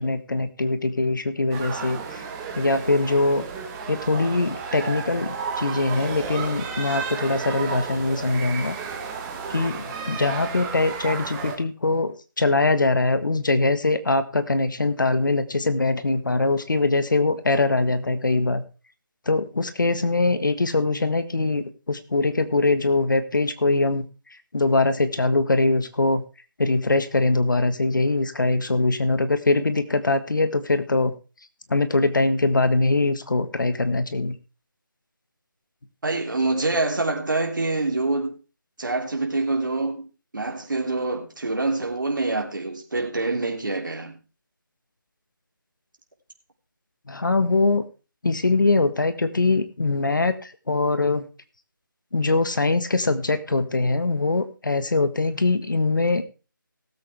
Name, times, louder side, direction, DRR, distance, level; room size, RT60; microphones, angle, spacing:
voice 1, 0.0-2.2 2.5-3.4 3.9-8.8 9.5-18.6 19.2-24.0 24.5-26.2 26.6-31.1 31.7-34.4 47.1-47.9 48.2-51.3 52.1-56.2, left 3 dB, 65° left, 1.5 m, -22 dB
sound 1, 1.5-11.5, right 5 dB, 10° right, 1.3 m, -33 dB
voice 2, 36.0-38.3 38.8-40.0 40.3-44.2, right 2 dB, 65° right, 3.2 m, -26 dB
18.5 x 8.2 x 3.5 m
figure-of-eight pair, 160°, 11 cm